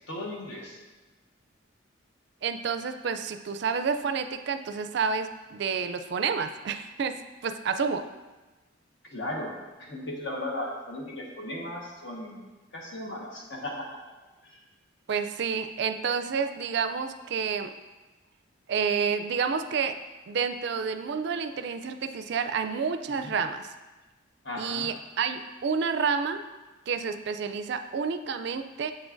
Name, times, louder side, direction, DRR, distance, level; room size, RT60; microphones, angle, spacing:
voice 1, 0.1-0.8 9.1-14.0 14.4-14.6 23.2-23.3 24.4-24.9, left 1 dB, 60° left, -2 dB, 1.2 m, -36 dB
voice 2, 2.4-8.1 15.1-17.7 18.7-20.0 20.3-23.7 24.6-26.4 26.9-28.9, right 6 dB, 55° right, 9 dB, 0.3 m, -29 dB
7.3 x 6.1 x 2.5 m, 1.2 s
head